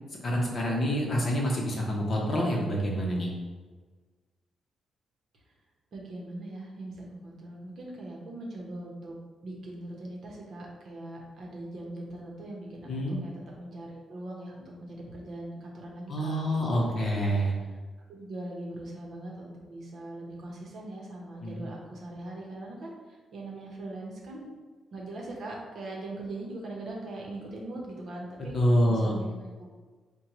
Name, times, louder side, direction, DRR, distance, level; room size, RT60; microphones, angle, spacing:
voice 1, 0.2-3.3 12.9-13.2 16.1-17.5 21.4-21.6 28.5-29.2, equal, 35° left, -2 dB, 0.7 m, -27 dB
voice 2, 5.9-9.2 9.4-13.3 13.6-17.2 18.1-24.5 24.9-28.5 28.9-29.7, right 2 dB, 50° right, -2 dB, 0.8 m, -41 dB
5.1 x 2.2 x 3.0 m, 1.4 s
cardioid pair, 150°, 0 cm